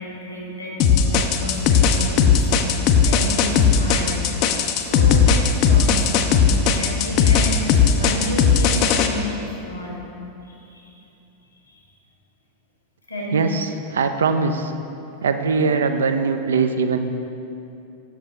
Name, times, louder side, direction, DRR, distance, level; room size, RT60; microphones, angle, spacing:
voice 1, 0.0-4.3 4.8-10.0 10.4-11.0 11.7-11.8 13.1-13.6 15.6-15.8, equal, 80° left, -3 dB, 1.4 m, -31 dB
sound 1, 0.8-9.1, left 6 dB, 40° left, 0.4 m, -17 dB
voice 2, 13.3-14.7 15.2-17.0, right 5 dB, 65° right, 8 dB, 0.4 m, -21 dB
7.3 x 6.9 x 2.9 m, 2.8 s
figure-of-eight pair, 90°, 0 cm